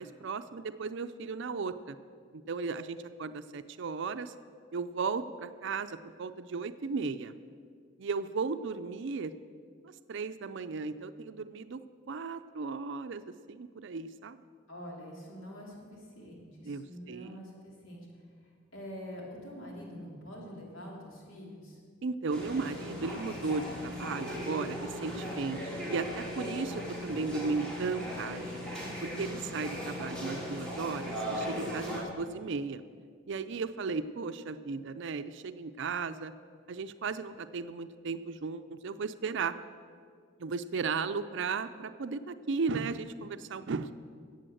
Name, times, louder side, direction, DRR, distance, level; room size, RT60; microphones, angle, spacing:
voice 1, 0.0-2.0 2.3-4.3 4.7-7.3 8.0-9.3 9.8-14.4 16.6-17.4 22.0-28.4 29.0-32.8 33.3-36.3 36.7-39.6 40.4-43.9, right 4 dB, 65° right, 11 dB, 0.5 m, -35 dB
voice 2, 14.7-18.0 18.7-21.8, equal, 90° left, -2 dB, 3.3 m, -45 dB
sound 1, 22.3-32.0, equal, 5° left, 3.0 m, -38 dB
14.0 x 8.4 x 7.7 m, 2.1 s
head